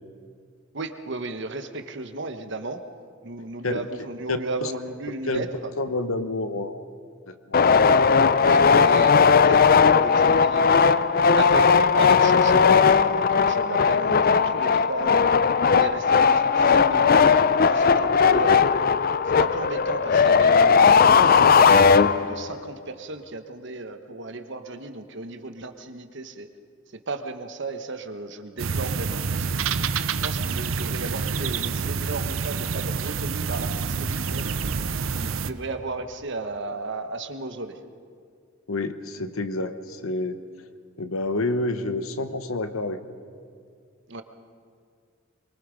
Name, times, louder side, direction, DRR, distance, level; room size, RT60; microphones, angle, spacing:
voice 1, 0.7-2.8 3.2-5.7 8.4-10.8 11.4-15.2 15.7-18.7 19.3-26.5 27.1-29.6 30.1-34.6 35.2-37.8 44.1-44.2, right 3 dB, 60° right, 8 dB, 1.2 m, -34 dB
voice 2, 4.3-4.7 5.3-5.5 5.8-6.9 7.3-7.6 38.7-40.4 41.0-43.0, left 2 dB, 85° left, 10 dB, 1.1 m, -28 dB
sound 1, 7.5-22.5, left 5 dB, 45° left, 0.4 m, -18 dB
sound 2, 28.6-35.5, right 5 dB, 75° right, 0.7 m, -27 dB
23.5 x 23.0 x 5.2 m, 2.2 s
head